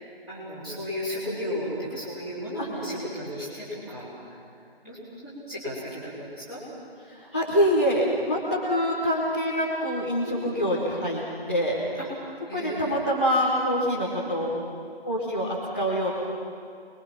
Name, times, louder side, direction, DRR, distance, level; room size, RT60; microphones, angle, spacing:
voice 1, 0.3-4.1 4.8-5.0 5.2-6.6 10.2-10.6 12.0-12.1 12.5-13.0 14.1-14.2, equal, 5° right, -13 dB, 3.7 m, -34 dB
voice 2, 7.0-11.8 12.5-14.5 15.0-16.1, equal, 10° left, -9 dB, 1.1 m, -25 dB
27.0 x 21.5 x 5.9 m, 2.4 s
figure-of-eight pair, 165°, 31 cm